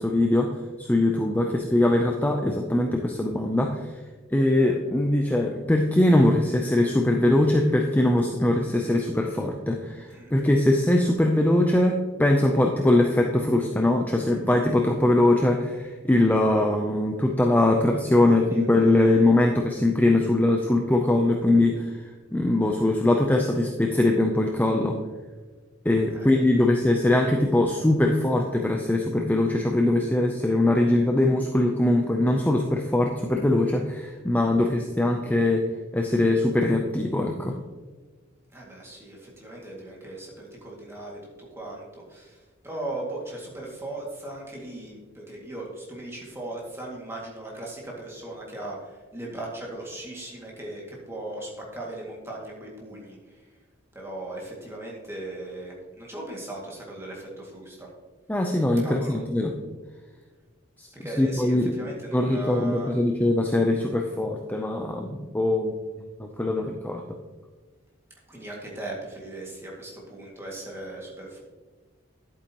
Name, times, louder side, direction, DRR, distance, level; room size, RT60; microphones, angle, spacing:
voice 1, 0.0-3.9 4.3-25.0 25.8-35.7 35.9-37.6 58.3-59.5 60.8-60.9 61.2-61.8 62.1-67.0, left 1 dB, 10° left, 2 dB, 0.5 m, -22 dB
voice 2, 18.3-19.2 26.1-26.4 38.5-41.2 41.6-53.5 53.9-57.9 58.8-59.2 61.0-62.9 68.3-71.4, right 2 dB, 10° right, -3 dB, 2.1 m, -38 dB
10.5 x 8.3 x 2.9 m, 1.4 s
head